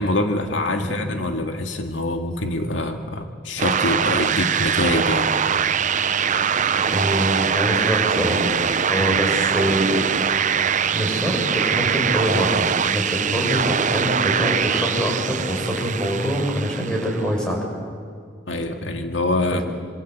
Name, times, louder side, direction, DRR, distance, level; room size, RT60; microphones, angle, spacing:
voice 1, 0.0-5.3 9.1-9.3 18.5-19.6, left 2 dB, 80° left, 5 dB, 2.0 m, -25 dB
sound 1, 3.6-17.3, right 7 dB, 40° right, 0.7 m, -22 dB
voice 2, 6.9-8.4 8.9-10.0 10.9-17.6 19.5-19.6, equal, 5° left, 0 dB, 6.5 m, -24 dB
26.0 x 26.0 x 8.2 m, 2.1 s
head